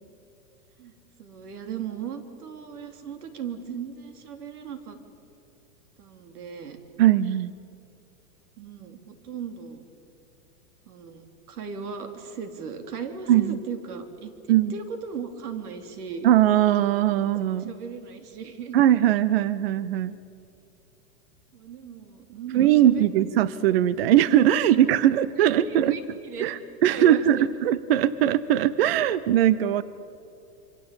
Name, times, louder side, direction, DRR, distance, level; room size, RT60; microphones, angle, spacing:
voice 1, 1.2-5.0 6.0-6.8 8.6-9.8 10.9-16.3 17.5-18.8 21.5-23.1 24.6-24.7 25.4-26.5 26.9-27.5, right 6 dB, 85° right, 7 dB, 3.8 m, -37 dB
voice 2, 7.0-7.5 13.3-13.6 14.5-14.7 16.2-17.7 18.7-20.2 22.5-26.0 26.4-29.8, right 11 dB, 45° right, 17 dB, 0.6 m, -20 dB
26.5 x 25.0 x 8.7 m, 2.7 s
supercardioid pair, 175°, 44 cm